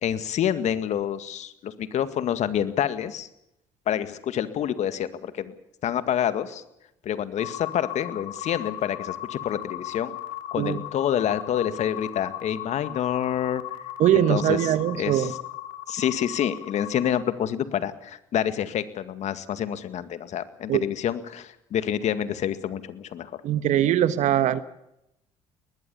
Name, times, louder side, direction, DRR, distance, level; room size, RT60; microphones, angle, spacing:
voice 1, 0.0-3.3 3.9-5.5 5.8-6.6 7.0-10.2 10.5-13.6 14.2-15.4 15.9-23.3, left 10 dB, 60° left, 12 dB, 2.0 m, -27 dB
sound 1, 7.4-17.2, left 14 dB, 80° left, 2.7 m, -37 dB
voice 2, 14.0-15.3 20.7-20.8 23.4-24.6, right 11 dB, 65° right, 14 dB, 1.3 m, -21 dB
22.5 x 20.0 x 7.1 m, 0.82 s
hypercardioid pair, 65°, 13 cm